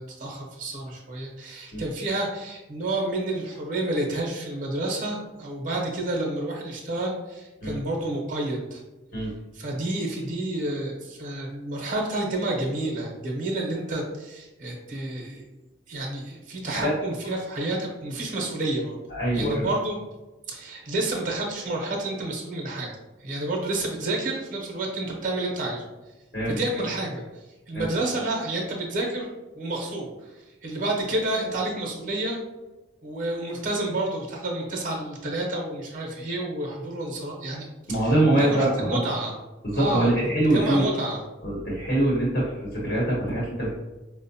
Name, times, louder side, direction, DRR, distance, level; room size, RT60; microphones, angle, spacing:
voice 1, 0.0-8.8 9.5-15.5 15.9-19.0 19.3-20.0 20.5-22.9 23.2-25.8 26.5-27.2 27.7-29.3 29.5-30.1 30.6-32.4 33.0-39.4 39.7-41.2, right 2 dB, 45° right, 0 dB, 0.7 m, -29 dB
voice 2, 19.1-19.7 26.3-26.6 27.7-27.9 37.9-39.0 39.6-40.9 41.4-43.7, right 1 dB, 55° left, -6 dB, 1.0 m, -23 dB
4.5 x 2.1 x 2.6 m, 1.1 s
head